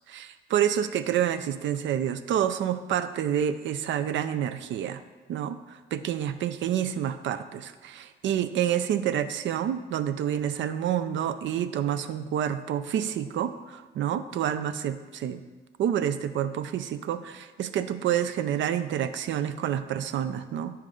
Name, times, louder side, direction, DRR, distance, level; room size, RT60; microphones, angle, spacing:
voice 1, 0.1-5.0 5.3-15.4 15.8-20.8, right 10 dB, 70° right, 12 dB, 0.5 m, -28 dB
9.1 x 4.5 x 3.7 m, 1.4 s
cardioid pair, 90°, 20 cm